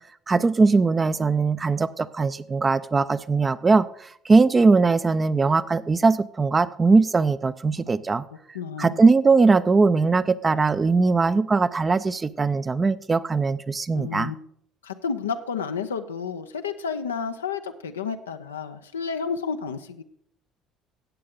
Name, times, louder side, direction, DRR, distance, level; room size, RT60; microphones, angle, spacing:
voice 1, 0.3-8.2 8.8-14.3, right 4 dB, 30° right, 14 dB, 0.6 m, -20 dB
voice 2, 8.5-9.0 13.9-14.4 14.8-20.0, left 6 dB, 90° left, 7 dB, 0.7 m, -31 dB
13.5 x 8.6 x 3.8 m, 0.68 s
hypercardioid pair, 60°, 0 cm